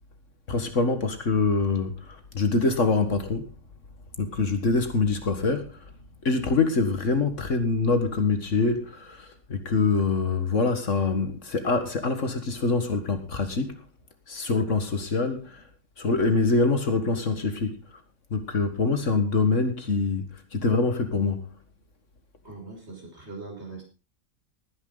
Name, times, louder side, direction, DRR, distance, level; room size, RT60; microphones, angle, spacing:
voice 1, 0.5-3.4 4.2-5.9 6.2-13.7 14.3-15.6 16.0-17.8 18.3-21.5, left 3 dB, 60° left, 2.0 m, -25 dB
voice 2, 22.4-23.8, right 3 dB, 50° right, 6.3 m, -41 dB
19.5 x 10.0 x 4.0 m
omnidirectional pair, 1.5 m